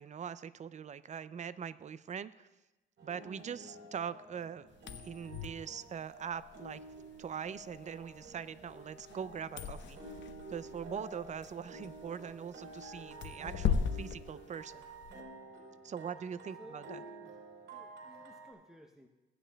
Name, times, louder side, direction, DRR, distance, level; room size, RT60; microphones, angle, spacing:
voice 1, 0.0-2.5 3.0-4.7 5.0-6.8 7.2-10.0 10.5-14.8 15.8-17.0, right 7 dB, 35° right, 15 dB, 0.4 m, -42 dB
sound 1, 3.0-18.5, right 2 dB, 65° right, 3.8 m, -51 dB
sound 2, 4.7-15.2, left 7 dB, 65° left, 0.8 m, -40 dB
voice 2, 16.6-17.4 17.7-19.1, right 1 dB, 5° right, 2 dB, 0.8 m, -57 dB
16.5 x 9.9 x 2.3 m, 1.1 s
cardioid pair, 90°, 20 cm